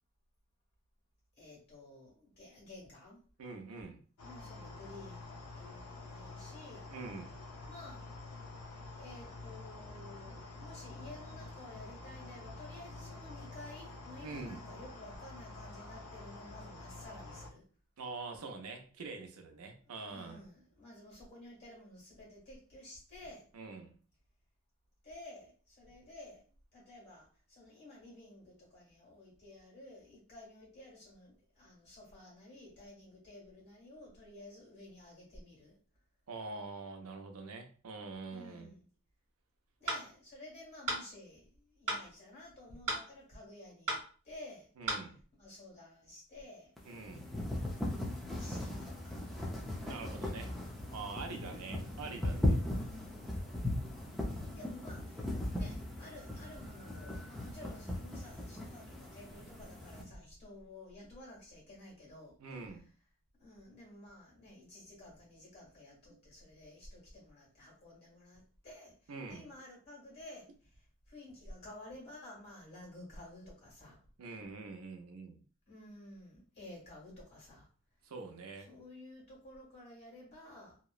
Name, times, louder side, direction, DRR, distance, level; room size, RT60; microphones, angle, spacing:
voice 1, 1.4-3.2 4.2-6.9 7.7-8.0 9.0-17.6 20.1-23.5 25.0-26.5 26.7-35.7 38.3-38.8 39.8-44.0 44.2-44.7 45.4-46.7 48.4-49.2 51.2-52.1 52.6-53.5 54.5-62.4 63.4-68.9 69.3-70.4 71.1-74.0 75.7-77.7 78.7-80.8, left 1 dB, 45° left, -4 dB, 1.5 m, -53 dB
voice 2, 3.4-4.0 6.9-7.3 14.2-14.6 18.0-20.4 23.5-23.9 36.3-38.7 44.8-45.2 46.8-47.3 49.8-50.6 50.9-52.6 62.4-62.8 69.1-69.5 74.2-75.4 78.0-78.7, right 3 dB, 85° right, 5 dB, 0.5 m, -45 dB
sound 1, 4.2-17.5, left 2 dB, 90° left, 0.5 m, -48 dB
sound 2, 39.9-40.0 40.9-41.0 41.9-42.0 42.9-43.0 43.9-44.0 44.9-45.0, right 2 dB, 55° right, 1.1 m, -34 dB
sound 3, 46.8-60.0, left 1 dB, ahead, 0.4 m, -38 dB
2.8 x 2.0 x 2.3 m, 0.40 s
head